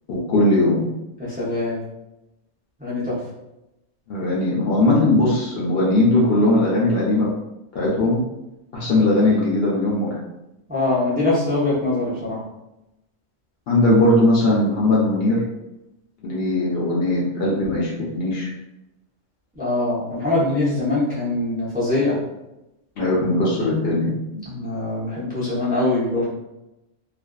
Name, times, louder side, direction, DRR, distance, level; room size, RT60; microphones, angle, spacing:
voice 1, 0.1-0.8 4.1-7.3 7.7-8.2 8.7-10.1 13.7-15.4 16.2-18.5 23.0-24.1, left 1 dB, 60° left, -6 dB, 0.7 m, -19 dB
voice 2, 1.2-1.8 2.8-3.2 10.7-12.4 19.6-22.2 24.3-26.2, left 2 dB, 10° right, -9 dB, 0.5 m, -23 dB
2.5 x 2.3 x 2.2 m, 0.94 s
omnidirectional pair, 1.3 m